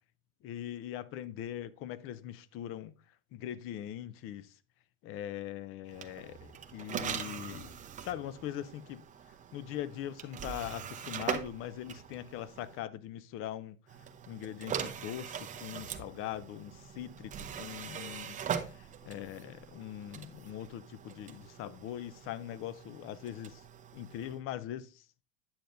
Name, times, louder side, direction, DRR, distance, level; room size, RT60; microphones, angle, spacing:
voice 1, 0.4-3.0 3.3-4.5 5.0-9.0 9.5-13.8 14.3-18.4 18.7-23.6 23.9-25.0, left 12 dB, 35° left, 0.4 m, -41 dB
sound 1, 5.9-12.8 13.9-24.4, right 8 dB, 20° right, 0.6 m, -42 dB
9.3 x 6.7 x 2.6 m
supercardioid pair, 140°, 41 cm